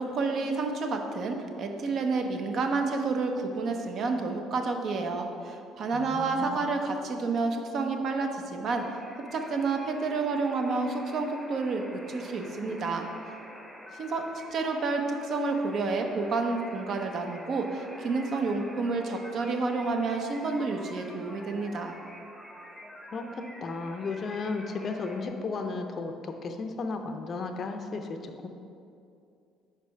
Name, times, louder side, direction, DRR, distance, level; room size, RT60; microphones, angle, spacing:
voice 1, 0.0-8.9 9.3-13.1 13.9-22.0, right 3 dB, 55° right, 4 dB, 0.7 m, -30 dB
voice 2, 5.9-6.7 23.1-28.5, left 3 dB, 45° left, 5 dB, 0.5 m, -34 dB
sound 1, 8.8-25.3, equal, ahead, 0.8 m, -47 dB
4.9 x 4.7 x 5.6 m, 2.5 s
cardioid pair, 95°, 0 cm